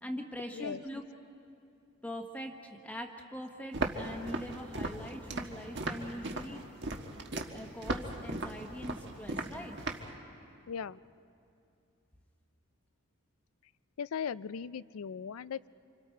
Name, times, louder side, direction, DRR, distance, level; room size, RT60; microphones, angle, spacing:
voice 1, 0.0-1.0 2.0-6.6 7.5-9.7, equal, 5° left, 3 dB, 1.0 m, -42 dB
voice 2, 0.5-0.8 10.7-11.0 14.0-15.7, left 7 dB, 90° left, 18 dB, 0.4 m, -38 dB
Walk footsteps, 3.7-10.1, right 2 dB, 55° right, 1.5 m, -37 dB
28.0 x 27.0 x 4.5 m, 2.6 s
head